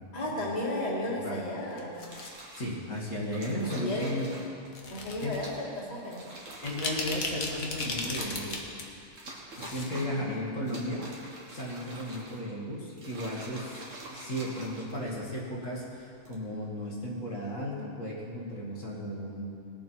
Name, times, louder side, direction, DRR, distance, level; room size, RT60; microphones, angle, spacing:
voice 1, 0.1-2.0 3.8-4.2 4.9-6.3 9.9-10.9, left 1 dB, 30° left, -5 dB, 2.1 m, -34 dB
sound 1, 1.6-2.4 3.2-3.5 4.7-5.4 5.8-5.9 6.5-8.8 9.1-9.9 10.2-10.3, left 3 dB, 90° left, 1.7 m, -36 dB
sound 2, 2.0-2.8 3.3-4.7 5.3-5.7 6.0-7.2 7.7-8.8 9.2-10.2 10.6-12.5 12.9-15.3 16.1-16.4, right 2 dB, 65° right, 2.1 m, -45 dB
voice 2, 2.5-4.3 5.2-5.4 6.6-8.7 9.6-11.1 11.5-19.5, equal, 65° left, -5 dB, 2.3 m, -35 dB
20.0 x 7.7 x 4.6 m, 2.5 s
omnidirectional pair, 1.4 m